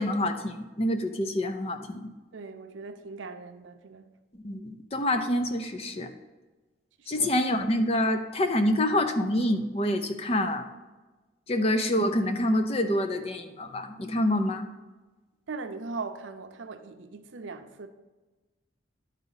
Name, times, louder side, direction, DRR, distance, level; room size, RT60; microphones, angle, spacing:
voice 1, 0.0-2.1 4.4-6.1 7.1-10.7 11.5-14.7, left 1 dB, 30° left, 0.5 m, -27 dB
voice 2, 2.3-4.1 7.0-7.3 15.5-17.9, right 4 dB, 85° right, 0.6 m, -39 dB
11.0 x 4.1 x 4.0 m
head